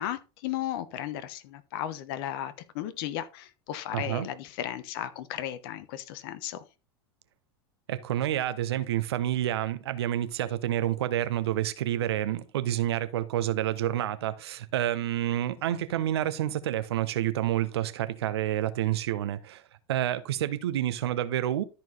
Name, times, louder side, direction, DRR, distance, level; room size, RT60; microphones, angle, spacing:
voice 1, 0.0-6.7, left 12 dB, 60° left, 1.1 m, -35 dB
voice 2, 3.9-4.3 7.9-19.6 19.9-21.6, right 12 dB, 75° right, 1.1 m, -29 dB
13.0 x 4.5 x 4.0 m
hypercardioid pair, 90°, 14 cm